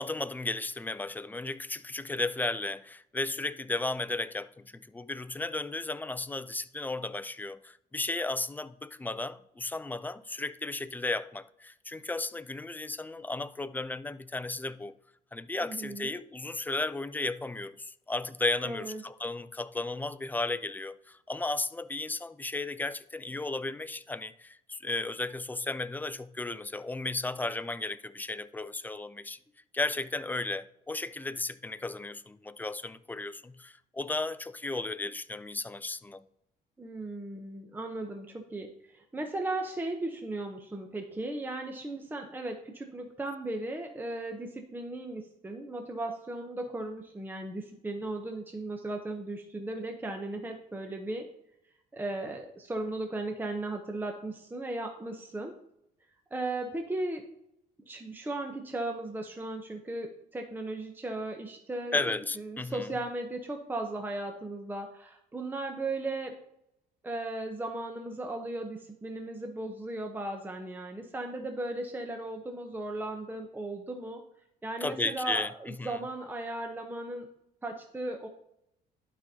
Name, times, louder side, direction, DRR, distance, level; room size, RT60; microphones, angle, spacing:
voice 1, 0.0-14.9 15.3-29.4 29.7-36.2 61.9-62.9 74.8-76.0, left 2 dB, 10° left, 0.3 m, -34 dB
voice 2, 15.6-16.1 18.6-19.0 36.8-51.3 51.9-55.5 56.3-57.2 57.9-62.0 62.4-66.4 67.0-74.2 74.6-77.3 77.6-78.3, right 2 dB, 10° right, 0.8 m, -36 dB
11.5 x 5.0 x 2.8 m
cardioid pair, 110°, 17 cm